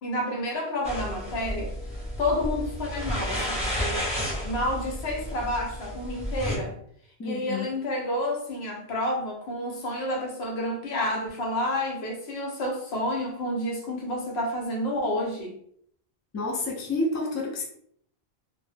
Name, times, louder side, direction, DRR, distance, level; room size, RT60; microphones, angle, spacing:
voice 1, 0.0-1.7 2.2-4.0 4.4-6.8 7.2-15.5, left 1 dB, 80° left, 1 dB, 0.9 m, -30 dB
sound 1, 0.8-6.6, equal, 5° right, 0.7 m, -32 dB
voice 2, 7.2-7.7 16.3-17.6, left 2 dB, 30° left, 0 dB, 0.3 m, -29 dB
2.1 x 2.0 x 3.2 m, 0.66 s
omnidirectional pair, 1.1 m